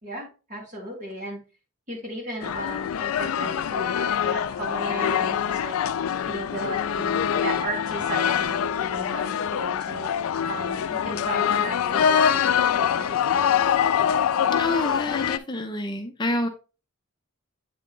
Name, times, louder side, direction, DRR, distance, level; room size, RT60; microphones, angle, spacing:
voice 1, 0.0-1.4 1.9-5.8 6.3-10.1 10.5-13.6, right 1 dB, 40° right, -3 dB, 2.8 m, -35 dB
sound 1, 2.4-15.4, left 8 dB, 80° left, 0.3 m, -24 dB
voice 2, 14.5-16.5, left 2 dB, 20° left, 5 dB, 0.5 m, -28 dB
8.3 x 3.6 x 3.7 m, 0.33 s
head